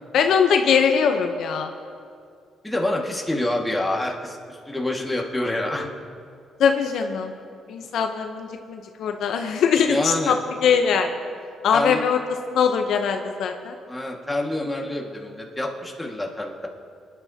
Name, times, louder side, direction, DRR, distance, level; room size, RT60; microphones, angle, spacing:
voice 1, 0.1-1.7 6.6-7.3 7.7-11.1 11.6-12.2 12.5-13.8, left 6 dB, 75° left, 5 dB, 0.8 m, -21 dB
voice 2, 2.6-5.9 9.9-10.3 11.7-12.0 13.9-16.7, left 1 dB, 10° left, -1 dB, 1.8 m, -27 dB
25.0 x 10.5 x 2.8 m, 2.3 s
cardioid pair, 90°, 0 cm